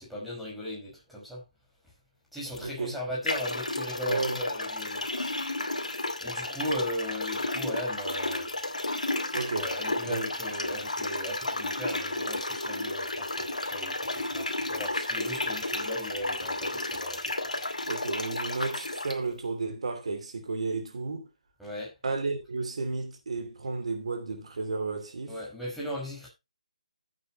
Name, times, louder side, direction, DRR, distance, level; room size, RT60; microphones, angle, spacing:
voice 1, 0.0-1.4 2.3-5.1 6.2-8.5 9.5-17.3 21.6-21.9 25.3-26.3, left 1 dB, ahead, 5.5 m, -37 dB
sound 1, 2.5-2.6 3.2-19.2, left 2 dB, 80° left, 2.4 m, -32 dB
voice 2, 2.6-3.0 4.1-4.4 9.3-9.7 10.0-10.3 17.9-21.2 22.0-25.4, right 3 dB, 60° right, 2.8 m, -32 dB
14.5 x 8.5 x 3.0 m
figure-of-eight pair, 150°, 4 cm